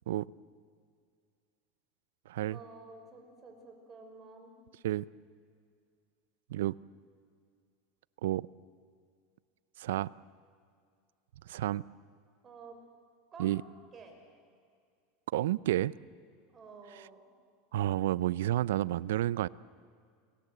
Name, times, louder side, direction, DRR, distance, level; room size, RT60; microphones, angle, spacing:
voice 1, 2.5-4.5 12.4-12.8 13.3-13.7 13.9-14.2 16.5-17.2, right 4 dB, 25° right, 3 dB, 5.7 m, -51 dB
voice 2, 9.8-10.1 11.5-11.8 13.4-13.6 15.3-15.9 17.7-19.5, right 14 dB, 85° right, 20 dB, 0.5 m, -30 dB
30.0 x 20.0 x 8.0 m, 2.2 s
supercardioid pair, 125°, 0 cm